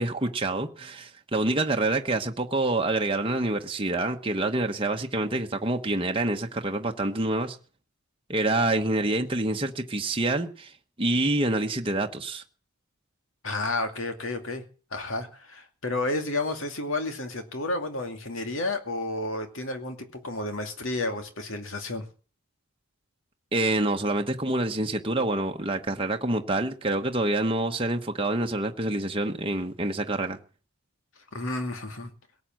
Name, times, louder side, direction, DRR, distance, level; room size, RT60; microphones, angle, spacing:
voice 1, 0.0-7.6 8.3-10.7 11.0-12.4 23.5-30.4, right 2 dB, 25° right, 1.2 m, -27 dB
voice 2, 13.4-14.6 14.9-22.1 31.3-32.1, left 2 dB, 60° left, 2.5 m, -31 dB
18.0 x 8.4 x 7.7 m
head